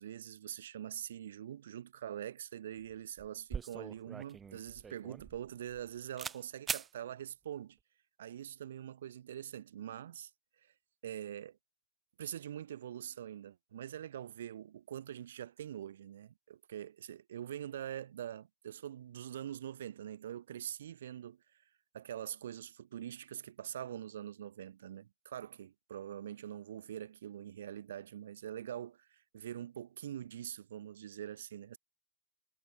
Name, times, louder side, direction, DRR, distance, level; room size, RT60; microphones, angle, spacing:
voice 1, 0.0-7.8 8.2-10.3 10.6-10.7 11.0-11.6 12.2-21.4 21.9-31.8, right 10 dB, 85° right, 4.1 m, -44 dB
sound 1, 2.8-2.9 3.2-5.9 6.2-6.4 6.7-6.9, right 6 dB, 10° right, 1.1 m, -41 dB
supercardioid pair, 180°, 0 cm